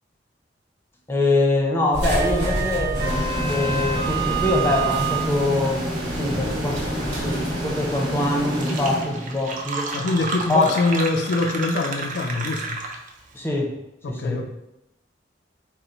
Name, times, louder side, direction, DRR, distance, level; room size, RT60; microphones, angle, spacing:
voice 1, 1.1-3.0 3.5-6.8 7.2-9.9 10.5-10.7 13.3-13.8 14.1-14.5, left 2 dB, 15° left, -1 dB, 0.6 m, -24 dB
sound 1, 1.9-8.5, right 3 dB, 75° right, 1.2 m, -27 dB
sound 2, 2.9-9.7, equal, 25° right, 1.1 m, -28 dB
Fill (with liquid), 8.1-8.2 8.4-13.2, right 3 dB, 45° right, 0.4 m, -31 dB
voice 2, 9.9-12.8 14.0-14.5, left 3 dB, 65° left, 4 dB, 0.3 m, -23 dB
4.2 x 2.0 x 3.8 m, 0.90 s
head